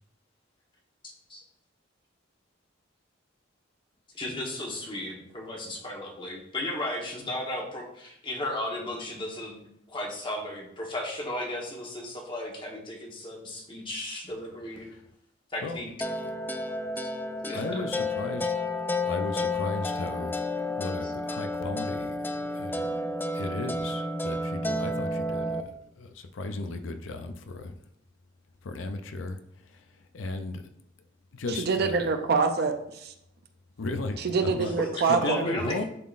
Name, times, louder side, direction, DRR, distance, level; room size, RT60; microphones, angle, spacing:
voice 1, 1.0-1.4 4.1-14.9 15.5-15.9 17.4-17.9 21.0-21.1 34.8-35.8, left 1 dB, 25° left, 0 dB, 1.2 m, -35 dB
sound 1, 16.0-25.6, left 2 dB, 10° left, 0.3 m, -31 dB
voice 2, 17.5-18.6 19.0-23.0 23.3-27.8 28.6-30.7 31.3-32.0 33.8-34.8 35.1-35.8, left 2 dB, 75° left, 8 dB, 0.5 m, -36 dB
voice 3, 31.6-33.1 34.2-35.4, right 4 dB, 55° right, 7 dB, 0.6 m, -25 dB
10.5 x 3.8 x 2.5 m, 0.76 s
head